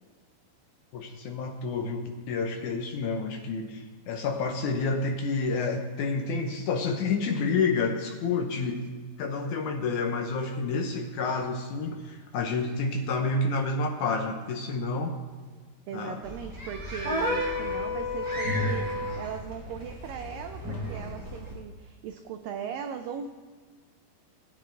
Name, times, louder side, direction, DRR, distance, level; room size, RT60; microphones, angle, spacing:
voice 1, 0.9-8.8 9.2-15.2 15.9-16.2, left 4 dB, 70° left, 3 dB, 1.9 m, -29 dB
voice 2, 15.9-23.3, right 7 dB, 80° right, 6 dB, 2.0 m, -38 dB
sound 1, 16.2-21.6, left 1 dB, 5° right, 1.7 m, -36 dB
sound 2, 17.0-19.3, left 1 dB, 45° right, 1.8 m, -30 dB
18.5 x 9.3 x 3.4 m, 1.5 s
omnidirectional pair, 4.6 m